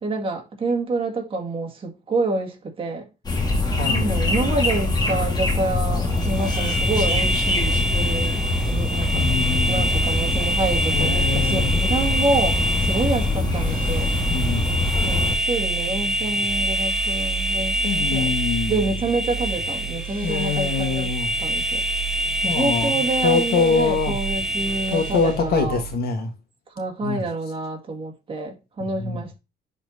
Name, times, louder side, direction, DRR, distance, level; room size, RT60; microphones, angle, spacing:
voice 1, 0.0-3.1 3.9-9.2 9.7-14.1 15.0-18.3 18.7-21.1 21.4-21.8 22.4-25.8 26.8-29.4, right 3 dB, 35° right, 2.0 m, -27 dB
sound 1, 3.2-15.3, left 2 dB, 25° left, 1.8 m, -23 dB
voice 2, 3.8-4.1 9.1-9.9 10.9-11.7 14.3-14.7 17.8-18.9 20.2-21.3 22.4-24.2 24.9-26.3 27.0-27.2 29.0-29.2, left 5 dB, 65° left, 1.5 m, -24 dB
sound 2, 6.1-25.4, right 1 dB, ahead, 1.1 m, -26 dB
sound 3, 13.1-26.0, right 9 dB, 55° right, 1.7 m, -33 dB
10.5 x 4.4 x 2.8 m
cardioid pair, 110°, 17 cm